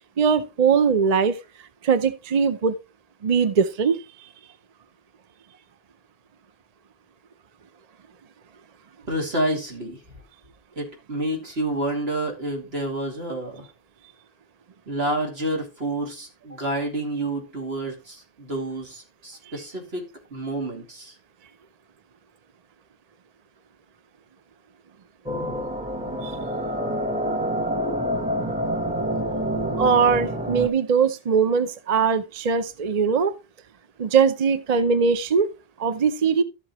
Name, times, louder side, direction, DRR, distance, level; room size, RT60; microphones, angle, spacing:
voice 1, 0.2-1.4 1.8-2.8 3.2-4.0 26.2-26.4 29.8-33.3 34.0-35.5 35.8-36.4, right 6 dB, 45° right, 0.7 m, -21 dB
voice 2, 9.1-10.0 10.8-13.7 14.9-21.1, right 1 dB, 75° right, 2.9 m, -29 dB
sound 1, 25.3-30.7, equal, 5° right, 1.1 m, -27 dB
12.5 x 7.7 x 3.0 m
omnidirectional pair, 1.1 m